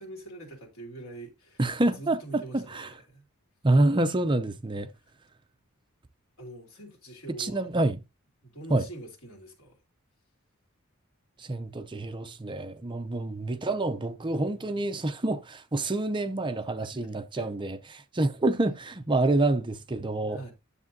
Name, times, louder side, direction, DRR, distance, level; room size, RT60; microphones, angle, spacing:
voice 1, 0.0-1.6 1.9-3.3 5.0-5.1 6.4-7.7 8.4-9.8 16.9-17.0 17.4-17.5 20.3-20.5, right 2 dB, 75° left, 2.9 m, -44 dB
voice 2, 1.6-2.9 3.6-4.9 7.4-8.0 8.7-8.8 11.4-20.4, right 2 dB, 20° right, 0.6 m, -27 dB
9.9 x 7.4 x 2.7 m
head